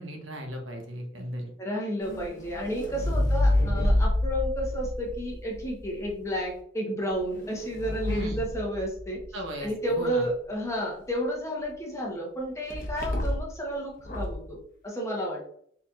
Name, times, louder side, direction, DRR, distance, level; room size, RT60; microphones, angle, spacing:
voice 1, 0.0-1.5 3.0-3.2 8.1-8.4 9.3-10.2, right 1 dB, 75° right, 2 dB, 0.9 m, -37 dB
voice 2, 1.6-9.2 9.6-14.6 14.8-15.4, equal, 15° left, -2 dB, 0.9 m, -31 dB
sound 1, 2.0-6.1 7.1-9.4 12.7-13.6 14.0-14.5, left 1 dB, 45° left, 0.9 m, -28 dB
4.2 x 3.9 x 2.4 m, 0.63 s
head